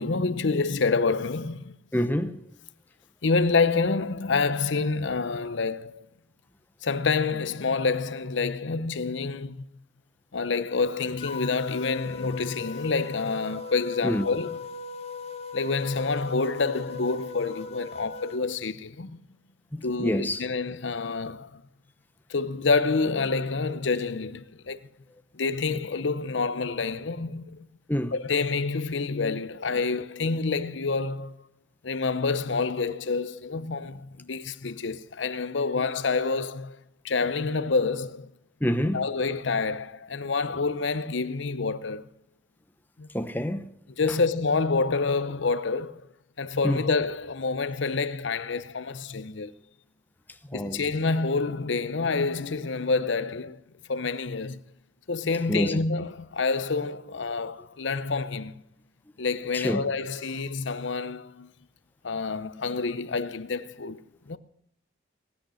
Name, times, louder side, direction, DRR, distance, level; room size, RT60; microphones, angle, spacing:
voice 1, 0.0-1.7 3.2-6.1 6.8-9.7 10.3-14.7 15.5-19.2 19.8-21.6 22.3-24.9 25.3-27.7 28.1-31.3 31.8-36.8 37.0-38.3 38.9-42.1 43.0-43.1 43.9-46.1 46.4-49.5 50.5-53.6 53.9-54.6 55.1-58.5 59.2-61.5 62.0-64.4, left 4 dB, 75° left, 0.8 m, -28 dB
voice 2, 1.9-2.4 14.0-14.2 19.7-20.4 27.9-28.1 38.6-39.0 43.1-43.6 46.6-46.8 50.5-50.8 55.5-55.8 59.5-59.8, equal, 10° left, 0.9 m, -27 dB
sound 1, 11.2-18.4, left 5 dB, 30° left, 1.4 m, -39 dB
18.0 x 10.5 x 6.4 m
head